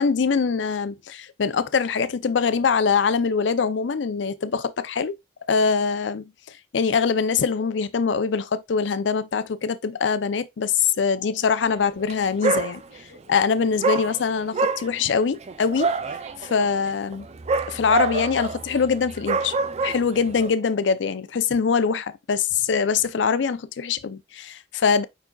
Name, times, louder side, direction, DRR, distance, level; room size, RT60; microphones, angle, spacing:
voice 1, 0.0-5.2 5.5-6.3 6.7-12.8 13.3-15.9 16.4-17.3 17.7-19.5 19.8-25.0, left 5 dB, 85° left, 0.5 m, -23 dB
Dog, 12.0-12.1 12.4-13.2 13.8-20.5, right 4 dB, 35° right, 0.4 m, -27 dB
5.1 x 4.7 x 2.3 m
head